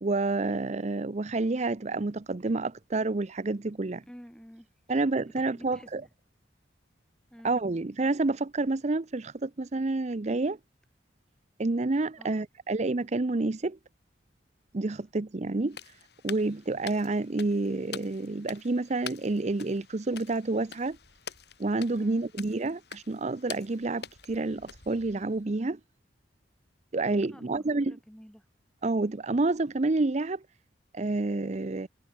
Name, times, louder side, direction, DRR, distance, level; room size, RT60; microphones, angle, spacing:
voice 1, 0.0-4.0 4.9-6.0 7.4-10.6 11.6-13.8 14.7-16.0 16.2-21.0 21.6-25.8 26.9-28.0 28.8-30.4 30.9-31.9, right 2 dB, 40° right, 0.6 m, -29 dB
voice 2, 4.0-5.0 5.4-5.9 7.3-7.6 12.2-12.4 22.0-22.3 27.3-28.4, equal, 5° left, 4.2 m, -50 dB
sound 1, 15.7-25.4, left 7 dB, 65° left, 5.0 m, -46 dB
head